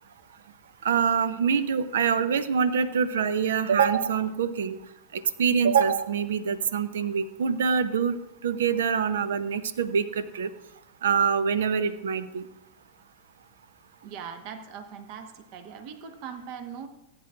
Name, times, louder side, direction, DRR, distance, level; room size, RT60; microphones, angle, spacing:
voice 1, 0.8-4.8 5.1-8.2 8.4-10.5 11.0-12.5, right 6 dB, 60° right, 15 dB, 0.7 m, -25 dB
voice 2, 14.0-16.9, right 7 dB, 45° right, 9 dB, 1.2 m, -40 dB
19.0 x 9.7 x 2.5 m, 0.88 s
figure-of-eight pair, 90°, 0 cm